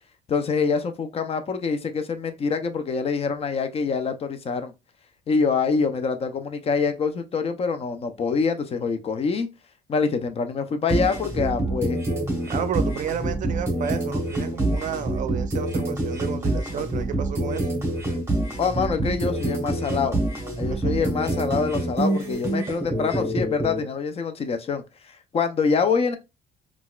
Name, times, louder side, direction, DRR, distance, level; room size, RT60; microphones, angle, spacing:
voice 1, 0.3-4.7 5.3-9.5 9.9-12.0 18.6-20.2 20.6-26.2, left 5 dB, 35° left, 0.5 m, -25 dB
sound 1, 10.9-23.8, right 1 dB, 15° right, 0.9 m, -26 dB
voice 2, 12.5-17.7 20.7-21.2, right 8 dB, 50° right, 0.5 m, -31 dB
3.9 x 2.3 x 2.3 m
cardioid pair, 110°, 17 cm